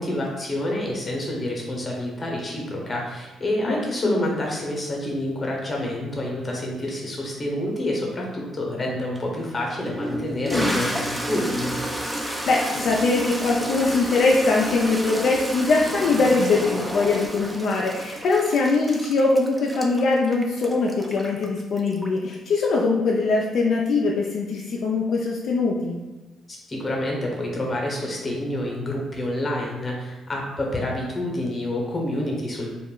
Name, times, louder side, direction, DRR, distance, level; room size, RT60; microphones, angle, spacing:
voice 1, 0.0-11.8 26.5-32.7, left 1 dB, 30° left, -1 dB, 0.8 m, -28 dB
voice 2, 3.7-4.2 10.5-10.8 12.2-26.0, left 3 dB, 65° left, -2 dB, 0.3 m, -22 dB
Toilet flush, 9.1-9.2 9.9-22.3, equal, 10° right, 0.4 m, -31 dB
2.2 x 2.0 x 3.7 m, 1.2 s
cardioid pair, 90°, 0 cm